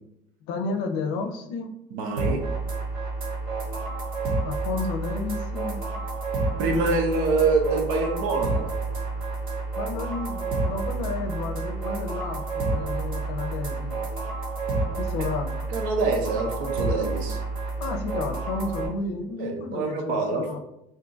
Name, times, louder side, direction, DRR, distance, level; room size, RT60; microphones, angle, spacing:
voice 1, 0.5-1.7 4.4-5.8 9.8-14.0 15.0-15.5 17.8-20.6, left 4 dB, 80° left, 5 dB, 0.5 m, -32 dB
voice 2, 1.9-2.4 6.6-8.7 15.2-15.3 15.7-17.4 19.4-20.6, right 3 dB, 65° right, 3 dB, 0.7 m, -25 dB
sound 1, 2.2-18.9, right 3 dB, 35° right, 0.8 m, -29 dB
2.6 x 2.4 x 3.8 m, 0.82 s
cardioid pair, 170°, 15 cm